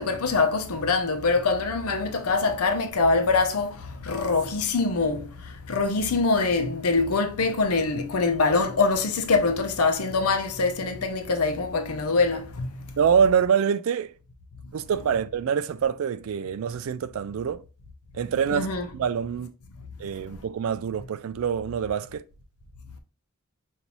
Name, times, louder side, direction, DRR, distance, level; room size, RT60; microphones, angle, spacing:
voice 1, 0.0-3.7 4.1-5.2 5.7-12.7 18.5-18.9, left 4 dB, 80° left, 0.7 m, -24 dB
voice 2, 13.0-14.1 14.7-17.6 18.1-19.5 20.0-22.2, right 7 dB, 65° right, 0.3 m, -25 dB
5.3 x 2.6 x 3.0 m
head